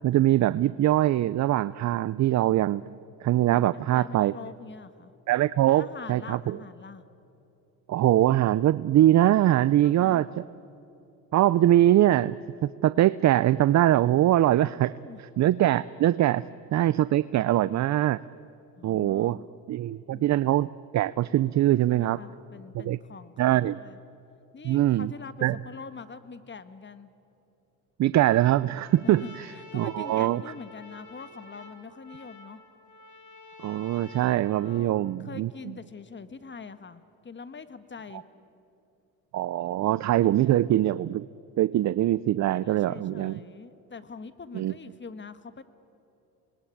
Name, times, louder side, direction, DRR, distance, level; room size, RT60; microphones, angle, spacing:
voice 1, 0.0-2.8 3.2-4.3 5.3-6.6 7.9-10.3 11.3-12.4 12.8-14.9 15.4-16.4 16.7-18.2 18.8-19.4 19.7-22.2 22.7-23.0 23.4-23.8 24.6-25.1 25.4-25.6 28.0-29.5 29.7-30.4 33.6-35.5 39.3-41.3 41.6-43.4 44.5-44.7, right 13 dB, 40° right, 18 dB, 0.5 m, -22 dB
voice 2, 3.5-5.1 5.7-7.0 9.8-10.2 14.5-15.2 18.8-19.5 20.1-20.4 21.9-24.0 24.5-27.1 29.0-32.6 34.6-38.2 40.4-40.6 42.5-45.6, left 5 dB, 25° left, 12 dB, 1.5 m, -44 dB
Trumpet, 28.3-35.1, left 3 dB, 40° left, 4.5 m, -49 dB
26.5 x 20.5 x 8.7 m, 2.8 s
supercardioid pair, 75°, 44 cm